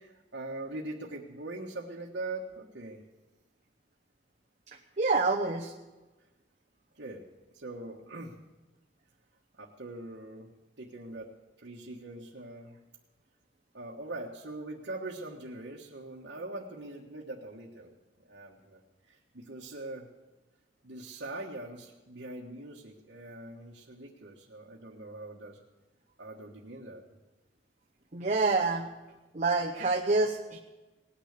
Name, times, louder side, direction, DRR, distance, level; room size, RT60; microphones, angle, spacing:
voice 1, 0.0-3.0 6.9-7.2 7.5-8.4 9.5-10.5 10.8-11.3 11.6-12.8 13.7-18.0 18.3-20.1 20.8-25.6 26.2-27.0, right 2 dB, 75° right, -3 dB, 1.5 m, -42 dB
voice 2, 5.0-5.7 28.1-28.9 29.3-30.6, right 3 dB, 40° right, 0 dB, 1.0 m, -27 dB
18.5 x 10.0 x 6.7 m, 1.1 s
head